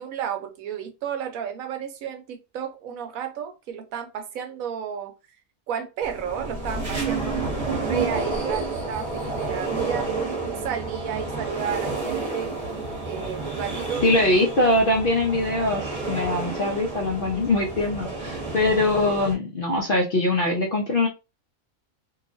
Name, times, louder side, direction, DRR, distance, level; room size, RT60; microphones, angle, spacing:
voice 1, 0.0-5.1 5.7-10.1 10.6-12.6 13.0-14.0, right 8 dB, 80° right, 1.0 m, -32 dB
sound 1, 6.0-19.3, right 3 dB, 30° right, 1.0 m, -30 dB
voice 2, 14.0-21.1, left 2 dB, 55° left, 0.6 m, -22 dB
2.8 x 2.3 x 2.4 m
omnidirectional pair, 1.4 m